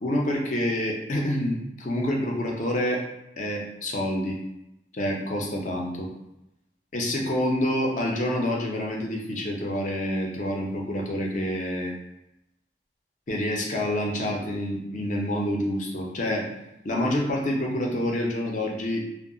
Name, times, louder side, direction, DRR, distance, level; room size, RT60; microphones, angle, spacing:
voice 1, 0.0-3.0 3.4-4.4 4.9-6.1 6.9-11.9 13.3-16.5 16.8-19.0, left 1 dB, 40° left, 0 dB, 0.5 m, -27 dB
2.3 x 2.1 x 3.7 m, 0.89 s
head